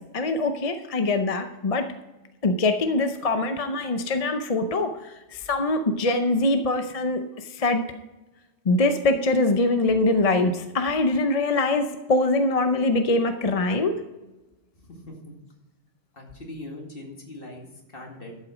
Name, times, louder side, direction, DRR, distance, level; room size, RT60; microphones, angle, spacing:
voice 1, 0.1-1.8 2.4-7.8 8.7-14.0, left 2 dB, 40° left, 7 dB, 0.7 m, -23 dB
voice 2, 14.7-15.4 16.1-18.4, left 1 dB, 55° left, 0 dB, 2.4 m, -41 dB
12.0 x 7.9 x 5.0 m, 1.1 s
omnidirectional pair, 1.2 m